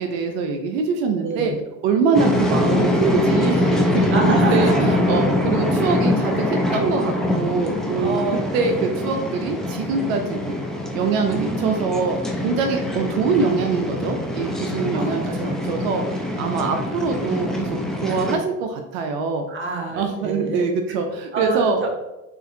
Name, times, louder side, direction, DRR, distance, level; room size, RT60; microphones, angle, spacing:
voice 1, 0.0-1.5 1.8-4.2 4.5-4.7 5.1-8.2 8.5-10.6 10.9-12.2 12.4-15.4 15.7-19.5 20.0-21.9, right 4 dB, 80° right, 5 dB, 0.5 m, -24 dB
voice 2, 1.2-1.6 4.1-5.0 8.0-8.9 11.2-11.9 14.9-15.7 16.6-16.7 19.5-20.6 21.3-21.9, right 3 dB, 30° right, 0 dB, 0.9 m, -27 dB
sound 1, 2.1-18.4, left 1 dB, ahead, 0.3 m, -23 dB
3.9 x 2.5 x 2.6 m, 1.0 s
supercardioid pair, 90°, 39 cm